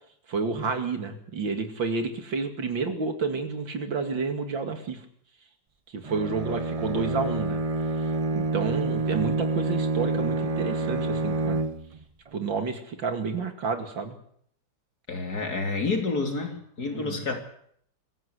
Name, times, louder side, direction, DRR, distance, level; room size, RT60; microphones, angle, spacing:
voice 1, 0.3-5.0 5.9-7.6 8.3-11.6 12.3-14.2 16.9-17.3, right 4 dB, 85° right, 6 dB, 3.1 m, -30 dB
Bowed string instrument, 6.0-12.0, right 3 dB, 40° right, 0.5 m, -28 dB
voice 2, 15.1-17.4, left 3 dB, 55° left, 4 dB, 3.5 m, -29 dB
23.5 x 15.0 x 8.2 m, 0.66 s
omnidirectional pair, 2.0 m